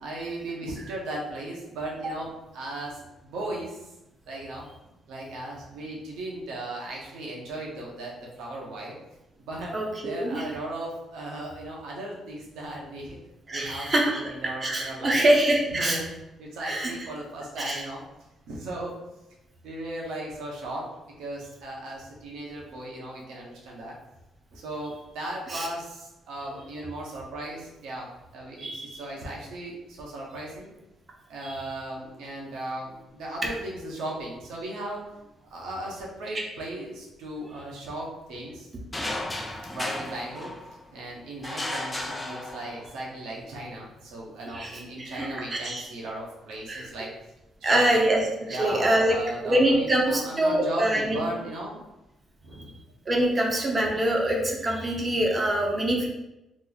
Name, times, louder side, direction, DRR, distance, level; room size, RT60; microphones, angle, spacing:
voice 1, 0.0-3.8 4.3-4.7 5.1-9.0 9.4-9.7 10.0-13.2 13.5-15.2 15.7-16.1 16.4-18.0 18.5-19.0 19.6-20.9 21.2-23.9 24.5-28.1 28.3-30.7 31.3-35.0 35.5-38.7 39.7-40.5 40.9-47.1 47.6-48.0 48.5-51.8 52.4-52.8, right 1 dB, 85° right, -2 dB, 0.9 m, -36 dB
voice 2, 9.7-10.5 13.5-14.2 14.6-16.0 16.6-17.1 17.6-17.8 25.5-25.7 28.6-29.0 31.4-31.6 44.5-45.8 46.7-46.9 47.6-49.2 49.4-51.3 53.1-56.1, right 1 dB, 30° right, 0 dB, 0.7 m, -24 dB
sound 1, 38.9-40.9 41.4-43.0, left 1 dB, 15° left, 0.4 m, -34 dB
3.0 x 2.0 x 3.8 m, 0.94 s
cardioid pair, 90°, 0 cm